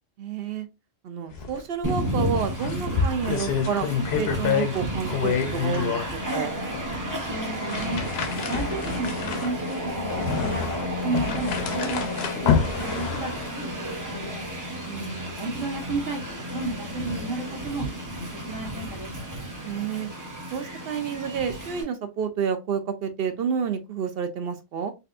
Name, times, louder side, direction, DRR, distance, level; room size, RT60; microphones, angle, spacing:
voice 1, 0.2-0.7 1.0-3.9 4.2-6.5 14.9-15.4 19.6-20.1 20.5-24.9, right 7 dB, 60° right, 0.7 m, -30 dB
sound 1, 1.3-1.6 1.9-2.0 2.4-4.8 5.1-6.1 6.7-6.9 7.5-13.6, left 6 dB, 60° left, 0.7 m, -28 dB
Train, 1.8-21.8, equal, 20° right, 0.5 m, -32 dB
voice 2, 7.2-8.0 8.3-14.4 15.4-19.2, right 3 dB, 80° right, 1.4 m, -33 dB
4.0 x 2.3 x 2.4 m
omnidirectional pair, 1.3 m